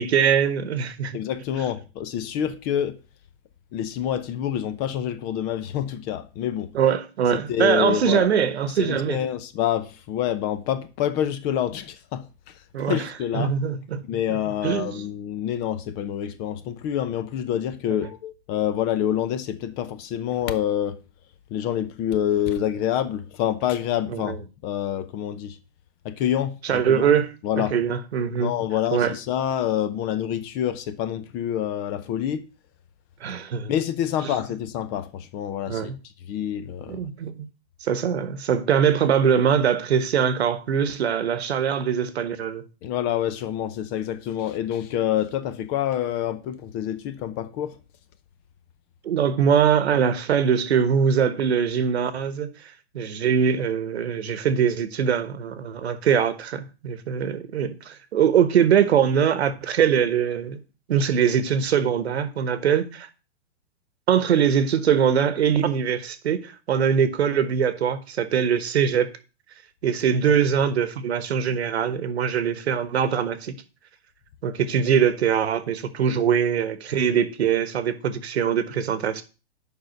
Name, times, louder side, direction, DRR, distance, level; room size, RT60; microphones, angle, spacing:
voice 1, 0.0-1.2 6.7-9.2 12.7-13.1 13.3-14.0 14.6-14.9 24.1-24.4 26.6-28.5 28.9-29.1 33.2-33.7 34.2-34.4 35.7-36.0 36.9-37.5 37.8-42.6 49.0-52.5 52.9-60.6 60.9-63.1 64.1-69.1 69.8-73.5 74.4-79.2, right 8 dB, 75° right, 1.2 m, -22 dB
voice 2, 1.1-3.0 3.7-6.7 7.3-8.3 8.8-13.5 14.0-21.0 21.5-24.4 24.6-25.6 26.0-27.1 27.4-27.8 28.4-32.4 33.7-35.9 36.2-37.0 42.8-47.8, left 10 dB, 30° left, 0.7 m, -27 dB
7.0 x 5.3 x 6.4 m
hypercardioid pair, 140°, 32 cm